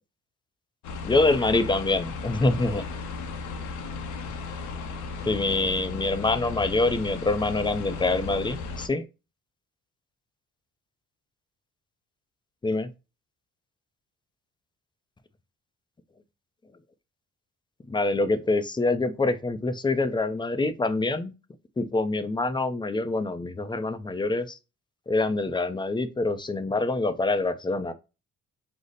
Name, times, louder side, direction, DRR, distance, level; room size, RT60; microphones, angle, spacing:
sound 1, 0.8-8.9, left 4 dB, 75° left, 0.7 m, -35 dB
voice 1, 1.0-2.8 5.3-9.1 12.6-12.9 17.9-21.3 21.8-24.6 25.1-27.9, left 2 dB, 15° left, 0.5 m, -25 dB
5.0 x 2.0 x 4.0 m
cardioid pair, 90°, 30 cm